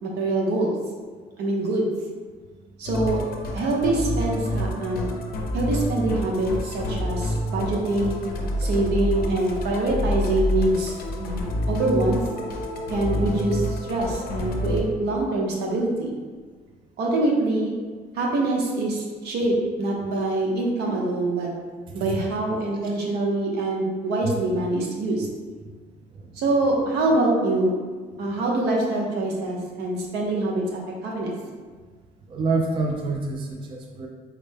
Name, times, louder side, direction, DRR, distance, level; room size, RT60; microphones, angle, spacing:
voice 1, 0.0-0.7 1.4-1.9 2.8-3.2 3.5-5.1 5.5-8.2 8.6-10.9 11.2-12.2 12.9-16.2 17.0-17.7 18.1-19.0 19.2-21.5 21.9-25.3 26.4-27.7 28.2-31.3, right 2 dB, 75° right, -2 dB, 0.8 m, -24 dB
Musical instrument, 2.8-14.8, left 1 dB, 65° left, 0.5 m, -28 dB
voice 2, 21.9-22.2 22.8-22.9 24.2-24.3 26.2-26.3 32.3-34.1, right 3 dB, 30° right, 1 dB, 0.3 m, -27 dB
4.2 x 2.1 x 3.3 m, 1.5 s
cardioid pair, 110°, 17 cm